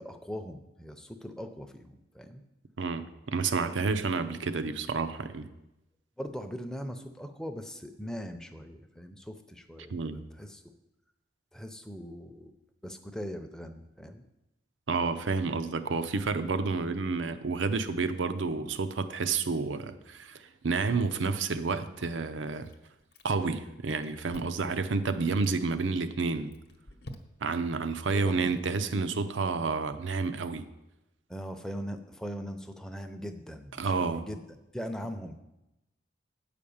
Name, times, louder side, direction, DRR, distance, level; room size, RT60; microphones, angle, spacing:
voice 1, 0.0-2.4 6.2-10.7 11.5-12.5 12.8-14.2 28.1-28.6 31.3-35.4, equal, 5° left, 6 dB, 0.6 m, -40 dB
voice 2, 2.8-5.5 9.9-10.2 14.9-22.7 23.2-26.5 27.4-30.6 33.8-34.2, right 4 dB, 90° right, 11 dB, 0.6 m, -30 dB
Chewing mastication, 22.6-23.6 23.8-24.7 25.2-25.6 26.2-27.6, left 1 dB, 55° left, 0.9 m, -49 dB
9.4 x 5.0 x 7.0 m, 0.93 s
head